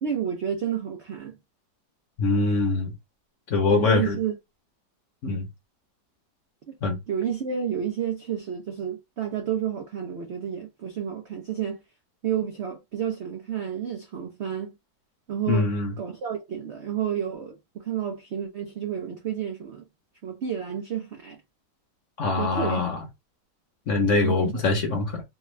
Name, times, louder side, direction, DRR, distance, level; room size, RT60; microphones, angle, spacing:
voice 1, 0.0-1.4 3.7-4.4 5.2-5.4 6.7-6.8 7.1-11.8 12.2-14.7 15.3-15.7 16.0-19.8 20.2-21.4 22.4-22.9 24.1-24.6, right 8 dB, 75° right, 0.6 m, -30 dB
voice 2, 2.2-2.9 3.5-4.2 5.2-5.4 6.8-7.0 15.5-15.9 22.2-23.0 23.9-25.2, left 3 dB, 55° left, 0.9 m, -23 dB
3.4 x 2.3 x 3.1 m
omnidirectional pair, 1.9 m